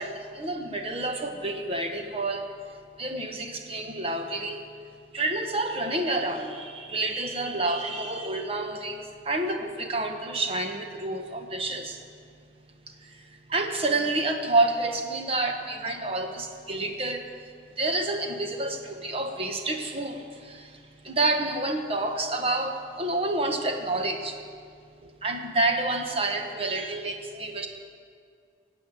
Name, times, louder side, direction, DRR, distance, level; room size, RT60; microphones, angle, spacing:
voice 1, 0.0-2.5 3.0-4.6 5.1-12.0 13.0-17.3 17.8-24.4 25.0-27.7, right 2 dB, 30° right, 4 dB, 1.4 m, -29 dB
18.5 x 8.4 x 7.7 m, 2.3 s
head